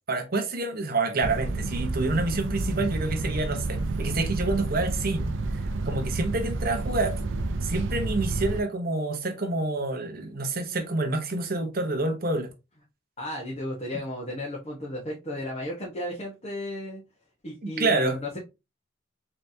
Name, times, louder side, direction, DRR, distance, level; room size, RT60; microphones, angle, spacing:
voice 1, 0.1-5.3 5.8-7.2 7.6-12.5 17.6-18.2, right 2 dB, 50° right, 0.9 m, -28 dB
sound 1, 1.2-8.6, right 2 dB, 75° right, 0.6 m, -30 dB
voice 2, 13.2-17.0 17.4-18.4, left 1 dB, 35° left, 1.2 m, -34 dB
4.1 x 3.4 x 2.7 m
head